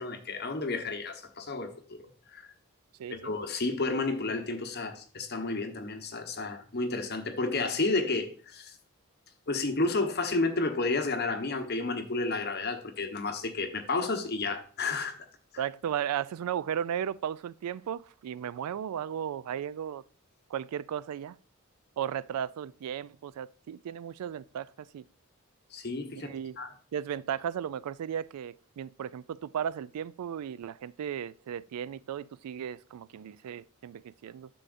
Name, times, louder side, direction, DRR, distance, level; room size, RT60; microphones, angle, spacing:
voice 1, 0.0-2.0 2.3-2.5 3.1-8.7 9.5-15.2 15.5-15.6 25.7-26.3 26.6-26.7, left 3 dB, 45° left, 1.1 m, -31 dB
voice 2, 3.0-3.3 15.6-20.0 20.5-21.4 22.0-25.0 26.2-26.6 26.9-34.5, right 9 dB, 85° right, 0.3 m, -35 dB
9.9 x 7.0 x 2.6 m
head